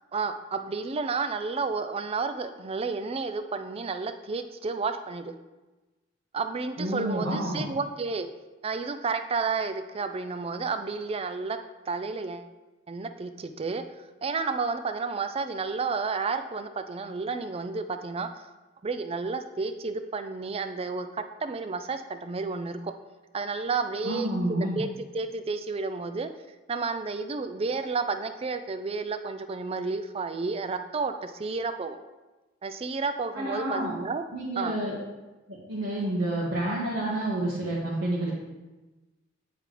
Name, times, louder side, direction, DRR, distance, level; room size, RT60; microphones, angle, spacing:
voice 1, 0.1-5.3 6.3-8.3 8.6-11.6 11.9-12.5 12.9-13.8 14.2-18.5 18.8-22.9 23.3-24.3 24.6-26.3 26.7-32.0 32.6-34.2 34.6-34.7, right 4 dB, 30° right, 9 dB, 0.4 m, -31 dB
voice 2, 6.8-7.6 24.0-24.8 33.3-33.9 34.3-34.9 35.5-38.3, right 1 dB, 70° right, -6 dB, 1.6 m, -29 dB
9.6 x 4.8 x 3.3 m, 1.1 s
head